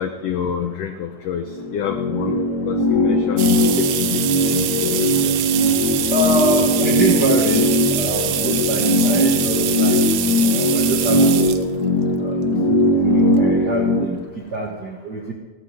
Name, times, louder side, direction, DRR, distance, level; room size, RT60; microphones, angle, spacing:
voice 1, 0.0-1.5 1.7-2.4 2.6-4.2 4.5-5.3, left 8 dB, 80° left, 6 dB, 1.4 m, -28 dB
sound 1, 1.5-14.0, left 1 dB, 60° left, 1.1 m, -19 dB
sound 2, 3.4-11.6 12.5-12.6 13.9-14.0 14.3-14.4 14.7-14.8, right 12 dB, 90° right, 2.4 m, -25 dB
voice 2, 6.1-10.0 10.5-11.6 12.2-15.3, right 2 dB, 65° right, 0 dB, 1.0 m, -25 dB
16.0 x 11.5 x 5.2 m, 1.3 s
omnidirectional pair, 3.7 m